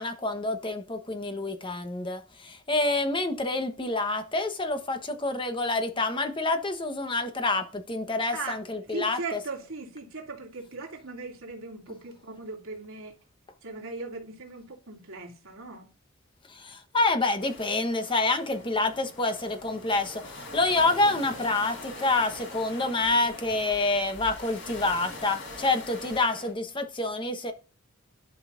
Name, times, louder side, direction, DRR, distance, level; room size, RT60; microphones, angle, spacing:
voice 1, 0.0-9.4 16.5-27.5, left 2 dB, 25° left, 1.1 m, -27 dB
voice 2, 8.3-13.2 13.6-15.9, right 3 dB, 75° right, 2.6 m, -39 dB
sound 1, 17.4-26.5, left 2 dB, 65° left, 4.3 m, -43 dB
11.0 x 5.5 x 2.6 m
head